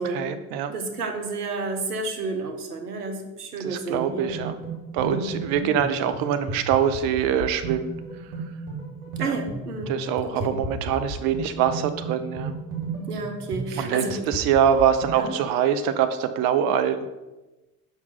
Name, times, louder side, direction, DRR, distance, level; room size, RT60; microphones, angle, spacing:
voice 1, 0.0-0.7 3.6-8.3 9.2-9.4 9.9-12.5 13.8-17.1, right 8 dB, 55° right, 10 dB, 0.6 m, -24 dB
voice 2, 0.7-4.3 5.0-5.3 9.2-9.9 10.2-10.5 13.1-14.2 15.1-15.3, right 3 dB, 90° right, 5 dB, 0.8 m, -30 dB
sound 1, 3.9-15.2, right 3 dB, 70° right, 2.2 m, -34 dB
5.9 x 4.0 x 5.5 m, 1.1 s
figure-of-eight pair, 60°, 45 cm